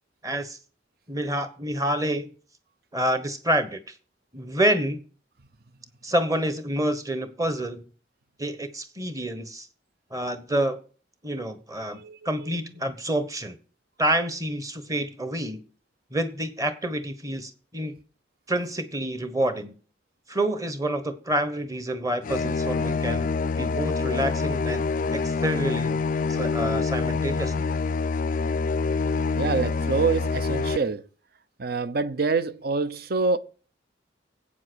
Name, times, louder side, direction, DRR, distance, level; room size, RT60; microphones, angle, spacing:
voice 1, 0.2-0.6 1.1-2.3 2.9-3.8 4.3-5.0 6.0-7.8 8.4-9.7 10.1-10.8 11.2-13.6 14.0-15.6 16.1-18.0 18.5-19.7 20.3-23.3 23.6-24.8 25.1-26.0 26.3-27.7, right 1 dB, 20° right, 1.1 m, -28 dB
sound 1, 22.2-30.8, left 4 dB, 45° left, 0.4 m, -26 dB
voice 2, 29.3-31.0 31.6-33.4, right 4 dB, 55° right, 0.7 m, -25 dB
8.3 x 7.3 x 6.3 m
head